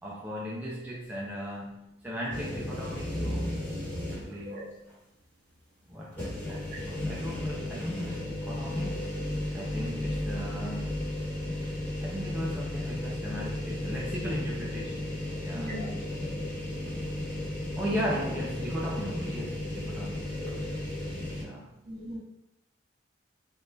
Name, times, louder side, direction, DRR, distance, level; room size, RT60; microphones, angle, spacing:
voice 1, 0.0-3.7 4.1-4.8 5.9-9.1 9.5-11.1 12.0-15.7 17.8-20.4 21.3-21.9, equal, 10° right, -5 dB, 0.4 m, -37 dB
sound 1, 2.3-4.5 4.9-5.0 6.1-21.4, left 1 dB, 10° left, 1.2 m, -34 dB
voice 2, 4.3-4.6 6.7-6.8 15.5-16.5 20.4-20.7 21.9-22.2, equal, 55° right, -5 dB, 1.0 m, -40 dB
3.5 x 2.4 x 2.6 m, 0.87 s
head